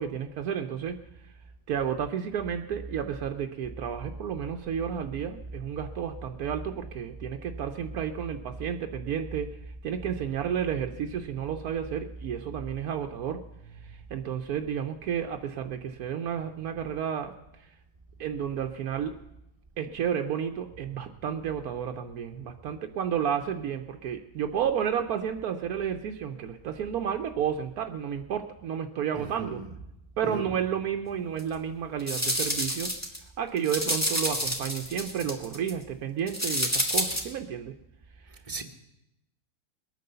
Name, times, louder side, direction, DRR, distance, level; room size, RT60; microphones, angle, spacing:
voice 1, 0.0-1.3 1.7-9.5 9.8-13.4 13.8-17.3 17.6-17.8 18.2-19.1 19.8-29.6 30.2-32.9 33.4-37.7 38.2-38.4, right 8 dB, 80° right, 1.2 m, -31 dB
voice 2, 29.1-29.7 30.2-30.5 38.5-38.6, right 4 dB, 25° right, 1.2 m, -36 dB
sound 1, 31.4-31.5 32.0-33.2 33.6-35.7 36.3-37.2, equal, 10° left, 1.9 m, -29 dB
21.0 x 9.3 x 6.8 m
omnidirectional pair, 1.6 m